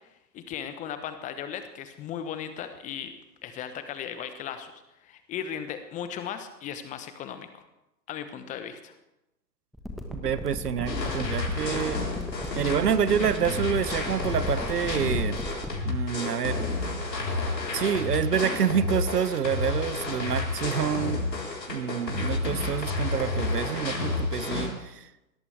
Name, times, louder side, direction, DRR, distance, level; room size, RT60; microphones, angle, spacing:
voice 1, 0.3-3.1 3.4-4.7 5.0-7.6 8.1-8.9, left 8 dB, 15° left, 10 dB, 0.9 m, -36 dB
sound 1, 9.7-15.7, left 1 dB, ahead, 1.3 m, -36 dB
voice 2, 10.1-12.0 12.6-15.4 15.8-16.6 17.7-21.3 21.7-25.0, right 8 dB, 65° right, 14 dB, 1.2 m, -27 dB
sound 2, 10.9-24.7, left 3 dB, 75° left, 4.2 m, -30 dB
21.0 x 18.0 x 3.4 m, 0.92 s
figure-of-eight pair, 120°, 50 cm